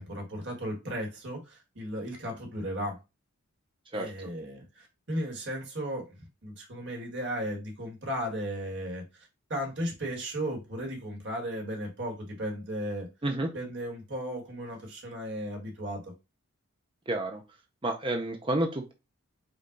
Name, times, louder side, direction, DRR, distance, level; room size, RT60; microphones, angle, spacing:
voice 1, 0.0-3.0 3.9-6.1 6.4-13.1 13.5-16.1, equal, 55° right, 1 dB, 1.5 m, -35 dB
voice 2, 3.9-4.3 13.2-13.5 17.1-17.4 17.8-18.9, right 1 dB, 25° right, 4 dB, 0.5 m, -30 dB
5.2 x 2.3 x 3.8 m, 0.26 s
head